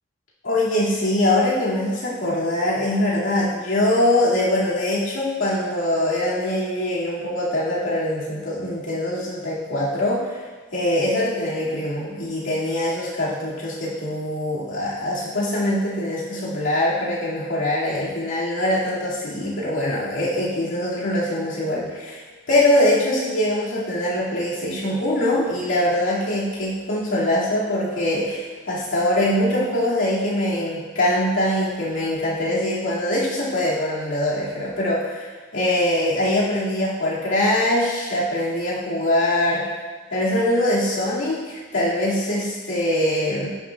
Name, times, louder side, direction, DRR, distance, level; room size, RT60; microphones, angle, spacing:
voice 1, 0.5-10.4 10.7-39.6 40.1-43.5, left 1 dB, 85° left, -7 dB, 2.3 m, -23 dB
11.0 x 6.2 x 2.4 m, 1.4 s
head